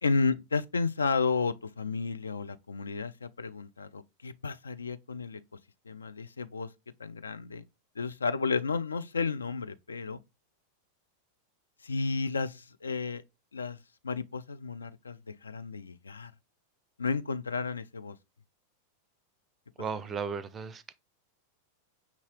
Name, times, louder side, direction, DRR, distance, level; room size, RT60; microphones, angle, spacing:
voice 1, 0.0-5.4 5.9-6.7 7.0-7.6 8.0-10.2 11.8-13.2 13.5-13.8 14.0-16.3 17.0-18.2, left 4 dB, 75° left, 0.3 m, -32 dB
voice 2, 19.8-20.9, right 6 dB, 20° right, 0.4 m, -35 dB
5.9 x 2.7 x 3.0 m
figure-of-eight pair, 90°, 0 cm